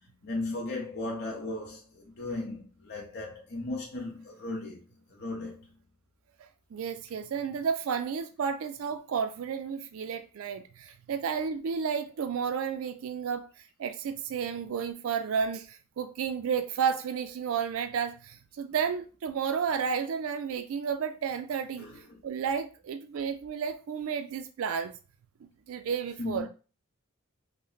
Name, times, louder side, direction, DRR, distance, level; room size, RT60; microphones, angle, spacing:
voice 1, 0.2-4.8 5.1-5.7 21.8-22.2 26.2-26.5, left 2 dB, 50° left, 0.7 m, -36 dB
voice 2, 6.4-21.9 22.2-24.9 25.7-26.5, right 6 dB, 70° right, 0.3 m, -32 dB
3.1 x 2.1 x 3.9 m
head